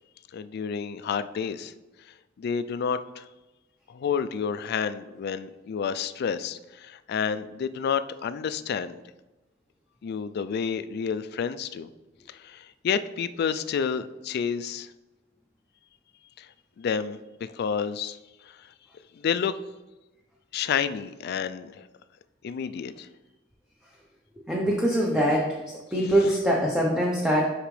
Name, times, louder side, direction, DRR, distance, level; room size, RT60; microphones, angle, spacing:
voice 1, 0.3-1.7 2.4-3.3 3.9-9.0 10.0-11.9 12.3-14.9 16.4-16.5 16.8-18.2 18.5-18.6 19.1-19.6 20.5-21.8 22.4-23.1, left 7 dB, 55° left, 13 dB, 0.3 m, -30 dB
voice 2, 24.5-25.6 25.9-27.5, equal, 5° right, -3 dB, 0.7 m, -23 dB
6.6 x 5.0 x 3.2 m, 1.1 s
head